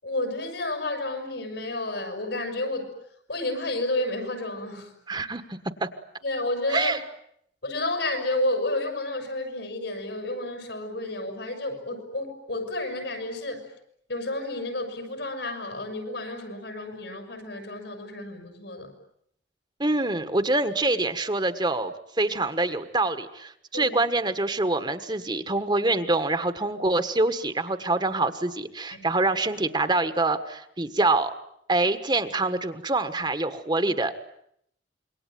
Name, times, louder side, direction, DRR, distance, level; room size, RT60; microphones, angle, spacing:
voice 1, 0.0-2.9 3.3-4.9 6.2-6.9 7.6-13.6 14.1-18.9 23.7-24.0 28.9-29.2 33.8-33.9, left 2 dB, 75° left, 6 dB, 7.2 m, -31 dB
voice 2, 5.1-5.9 6.7-7.0 19.8-31.3 31.7-34.1, right 2 dB, 25° right, 10 dB, 1.5 m, -25 dB
27.0 x 23.0 x 9.4 m, 0.72 s
head